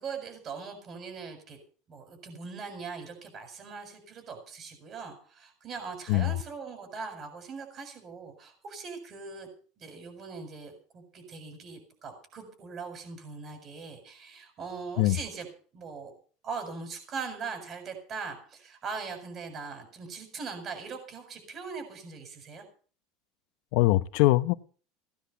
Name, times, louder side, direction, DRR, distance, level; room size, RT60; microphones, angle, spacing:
voice 1, 0.0-1.6 1.9-9.5 9.8-15.5 15.7-16.1 16.4-22.6, right 5 dB, 30° right, 7.2 m, -40 dB
voice 2, 23.7-24.5, left 18 dB, 65° left, 0.9 m, -22 dB
17.0 x 10.5 x 6.9 m
cardioid pair, 155°, 0 cm